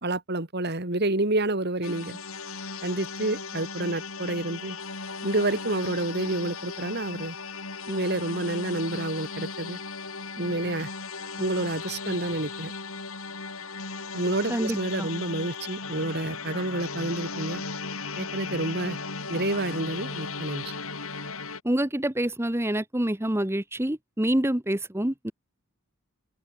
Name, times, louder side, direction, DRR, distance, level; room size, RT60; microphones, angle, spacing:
voice 1, 0.0-2.2 2.8-4.8 5.2-7.4 7.9-9.8 10.4-10.9 11.4-12.7 14.1-17.6 18.2-19.0 19.3-20.6, right 2 dB, 45° right, 2.5 m, -29 dB
sound 1, 1.8-21.6, left 4 dB, 70° left, 7.7 m, -36 dB
voice 2, 14.5-15.1 21.6-25.3, right 1 dB, 10° right, 1.0 m, -27 dB
open air
head